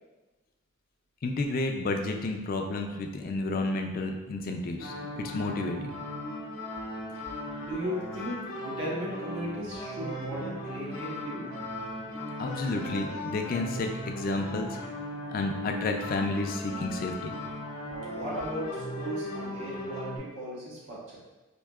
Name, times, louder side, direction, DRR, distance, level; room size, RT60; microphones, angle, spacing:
voice 1, 1.2-5.9 12.4-14.8 15.3-17.3, left 2 dB, 45° left, 4 dB, 0.3 m, -31 dB
sound 1, 4.8-20.2, left 1 dB, 85° left, 0.7 m, -37 dB
voice 2, 7.5-11.5 18.1-21.2, equal, 65° right, -6 dB, 1.0 m, -36 dB
4.4 x 2.7 x 2.3 m, 1.1 s
head